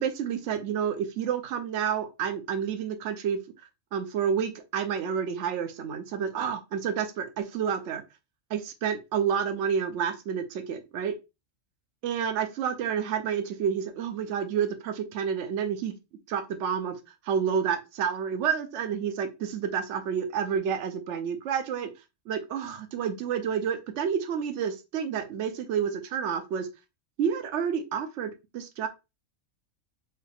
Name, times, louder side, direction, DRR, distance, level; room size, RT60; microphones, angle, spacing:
voice 1, 0.0-3.4 3.9-8.0 8.5-11.1 12.0-15.9 16.3-17.0 17.2-21.9 22.3-26.7 27.2-28.9, right 7 dB, 70° right, 7 dB, 1.0 m, -29 dB
4.6 x 2.4 x 3.4 m, 0.25 s
omnidirectional pair, 1.3 m